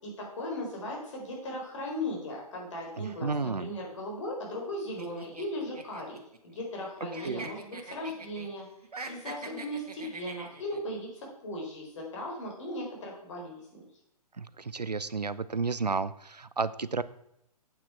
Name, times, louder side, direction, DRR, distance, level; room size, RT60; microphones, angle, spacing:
voice 1, 0.0-8.7 9.0-13.8, left 1 dB, 50° left, -1 dB, 4.1 m, -37 dB
voice 2, 3.0-3.7 7.2-7.5 14.4-17.0, right 4 dB, 85° right, 16 dB, 0.6 m, -32 dB
sound 1, 5.0-6.9 7.1-8.5 8.8-10.8, right 3 dB, 70° right, 1.5 m, -43 dB
8.7 x 8.4 x 4.5 m, 0.79 s
figure-of-eight pair, 125°, 20 cm